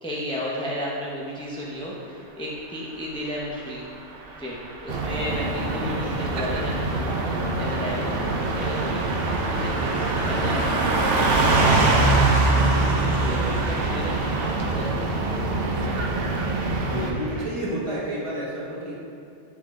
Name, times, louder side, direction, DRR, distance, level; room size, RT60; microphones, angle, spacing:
voice 1, 0.0-3.8 4.4-8.1 8.5-9.0 9.4-10.8 11.2-12.1 12.5-15.6, equal, 5° left, -5 dB, 0.5 m, -33 dB
Car passing by / Truck, 4.5-17.4, right 2 dB, 85° right, 1.1 m, -25 dB
sound 1, 4.9-17.1, right 2 dB, 60° right, 0.7 m, -27 dB
voice 2, 16.9-19.0, right 1 dB, 25° right, -7 dB, 1.3 m, -30 dB
7.6 x 3.9 x 3.6 m, 2.6 s
omnidirectional pair, 1.2 m